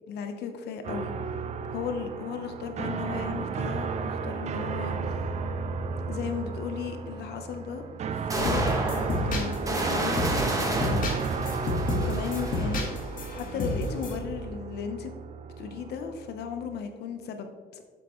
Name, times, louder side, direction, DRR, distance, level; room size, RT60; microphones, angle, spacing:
voice 1, 0.1-1.1 1.7-5.2 6.1-7.8 8.3-11.1 11.9-12.8 13.3-15.1 15.6-17.8, left 6 dB, 75° left, 6 dB, 1.0 m, -36 dB
sound 1, 0.8-16.8, right 5 dB, 40° right, 0.6 m, -34 dB
sound 2, 5.6-5.7 7.5-7.6 8.3-13.0, right 1 dB, 20° right, 1.5 m, -31 dB
sound 3, 8.4-14.2, left 1 dB, 55° left, 1.8 m, -31 dB
8.0 x 7.4 x 3.2 m, 1.5 s
cardioid pair, 110°, 17 cm